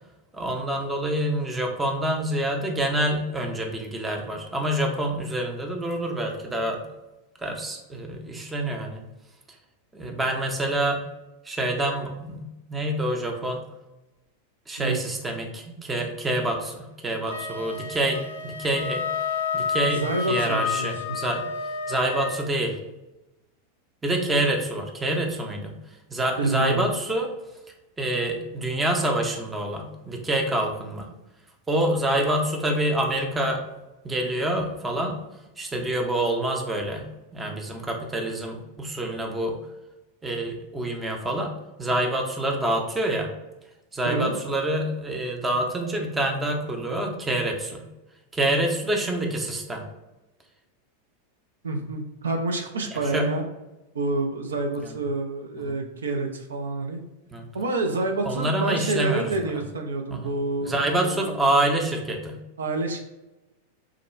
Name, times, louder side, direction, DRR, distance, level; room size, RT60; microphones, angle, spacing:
voice 1, 0.3-6.8 7.4-9.0 9.9-11.0 11.4-13.6 14.7-19.1 19.5-21.4 21.9-22.8 24.0-25.7 26.1-27.3 28.0-31.1 31.7-33.6 34.0-35.2 35.6-37.1 37.3-39.6 40.2-43.3 43.9-47.8 48.3-49.8 52.9-53.3 54.8-54.9 55.6-55.8 57.3-57.4 58.2-59.3 60.1-60.4 60.6-62.4, right 1 dB, 10° right, 2 dB, 0.5 m, -27 dB
Wind instrument woodwind instrument, 17.3-22.5, left 5 dB, 65° left, 0.3 m, -30 dB
voice 2, 19.9-21.2 26.4-26.9 44.0-44.4 51.6-53.4 53.9-57.0 57.5-61.3 62.6-63.0, right 2 dB, 70° right, 3 dB, 0.4 m, -28 dB
3.6 x 2.2 x 3.1 m, 1.0 s
figure-of-eight pair, 90°, 0 cm